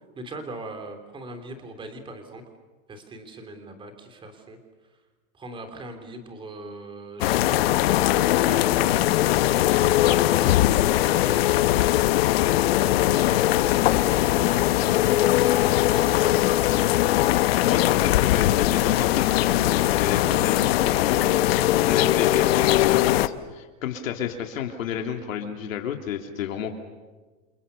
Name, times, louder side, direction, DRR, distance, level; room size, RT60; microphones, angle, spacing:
voice 1, 0.0-2.4 2.9-4.6 5.3-11.6 12.8-16.9 19.3-19.4, right 2 dB, 10° right, 7 dB, 3.2 m, -41 dB
sound 1, 7.2-23.3, left 14 dB, 45° left, 1.0 m, -20 dB
voice 2, 15.7-16.6 17.6-21.2 21.5-26.8, left 8 dB, 70° left, 4 dB, 3.0 m, -31 dB
29.0 x 28.5 x 7.0 m, 1.3 s
supercardioid pair, 165°, 41 cm